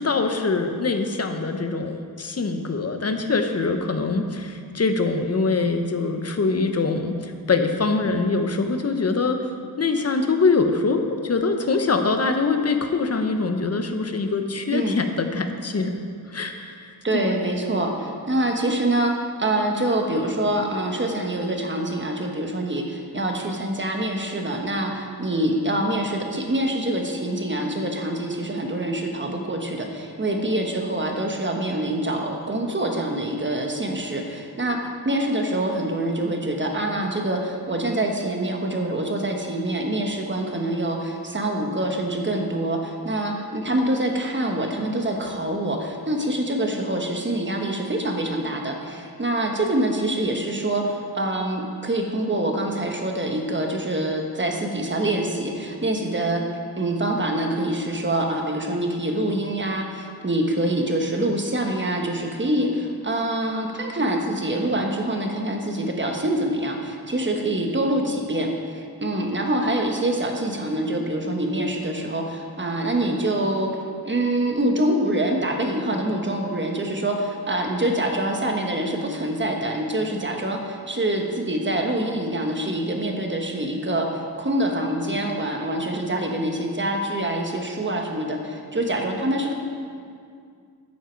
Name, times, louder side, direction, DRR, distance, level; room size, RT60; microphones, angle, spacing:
voice 1, 0.0-9.4 9.8-15.9 16.3-17.6, left 4 dB, 40° left, 6 dB, 0.9 m, -24 dB
voice 2, 17.0-19.1 19.4-34.8 35.0-56.4 56.8-73.7 74.0-89.5, right 1 dB, 30° right, 2 dB, 1.3 m, -25 dB
12.5 x 8.5 x 4.6 m, 2.3 s
wide cardioid pair, 105°, 39 cm